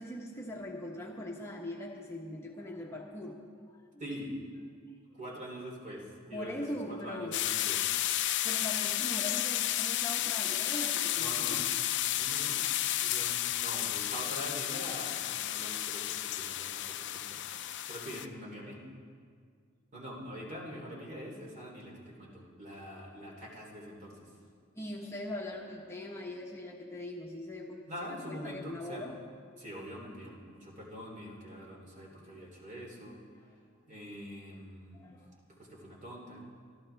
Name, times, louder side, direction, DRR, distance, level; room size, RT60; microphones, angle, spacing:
voice 1, 0.0-3.4 3.7-3.8 6.3-7.4 8.4-11.5 24.7-27.9 28.3-29.2 33.3-33.5 34.9-35.4, left 1 dB, 15° left, -2 dB, 1.1 m, -41 dB
voice 2, 4.0-4.3 5.2-7.8 11.1-11.6 12.1-12.6 12.9-17.4 17.9-18.8 19.9-24.3 27.9-29.0 29.6-33.2 33.8-35.1 35.5-36.4, equal, 35° right, -2 dB, 3.1 m, -44 dB
sound 1, 7.3-18.3, left 13 dB, 60° left, 0.5 m, -32 dB
25.5 x 13.0 x 3.4 m, 2.1 s
head